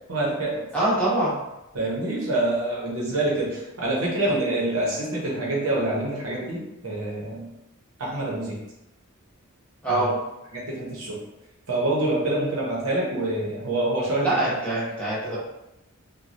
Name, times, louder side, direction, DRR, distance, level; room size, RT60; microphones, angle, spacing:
voice 1, 0.1-0.7 1.7-7.5 8.0-8.6 9.9-10.1 10.5-11.2 11.7-14.4, right 2 dB, 65° right, -4 dB, 0.9 m, -26 dB
voice 2, 0.7-1.4 9.8-10.1 14.2-15.4, right 1 dB, 5° left, -10 dB, 0.9 m, -24 dB
3.1 x 2.2 x 2.6 m, 0.91 s
head